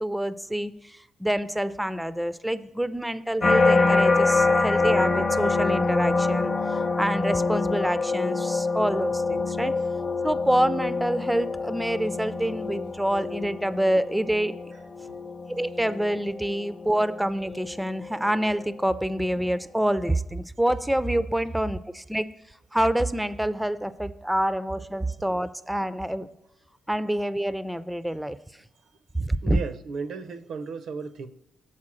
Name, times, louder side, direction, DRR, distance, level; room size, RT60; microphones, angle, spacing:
voice 1, 0.0-9.8 10.2-14.6 15.5-22.3 22.7-26.3 26.9-28.4 29.1-29.6, right 1 dB, 5° right, 0.3 m, -27 dB
sound 1, 3.4-18.6 19.1-19.6, left 3 dB, 30° left, 0.6 m, -26 dB
voice 2, 14.7-15.2 21.4-21.5 25.1-25.2 29.4-31.3, right 5 dB, 75° right, 0.5 m, -36 dB
7.5 x 4.3 x 6.1 m
cardioid pair, 80°, 0 cm